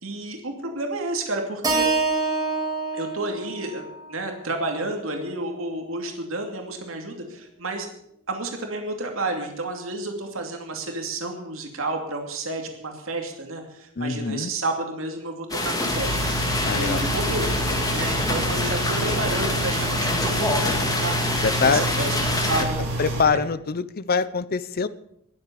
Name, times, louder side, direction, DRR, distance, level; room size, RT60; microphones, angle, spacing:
voice 1, 0.0-1.9 2.9-7.9 8.3-16.2 16.5-17.6 17.9-22.2 22.5-23.0 23.2-23.4, right 2 dB, 70° right, 3 dB, 2.6 m, -31 dB
Keyboard (musical), 1.6-5.9, right 3 dB, 20° right, 2.6 m, -28 dB
voice 2, 14.0-14.5 16.6-17.0 21.4-21.8 23.0-24.9, left 5 dB, 45° left, 16 dB, 0.7 m, -24 dB
sound 1, 15.5-22.6, left 2 dB, 20° left, 2.5 m, -26 dB
sound 2, 15.9-23.2, right 1 dB, 55° right, 7.0 m, -29 dB
20.5 x 8.0 x 7.0 m, 0.74 s
head